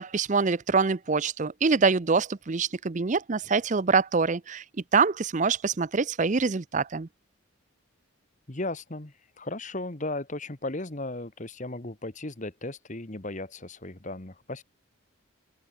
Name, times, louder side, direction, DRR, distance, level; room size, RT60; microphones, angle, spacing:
voice 1, 0.0-4.6 4.9-7.1, right 4 dB, 35° right, 0.5 m, -25 dB
voice 2, 8.5-14.6, left 2 dB, 35° left, 1.6 m, -36 dB
open air
head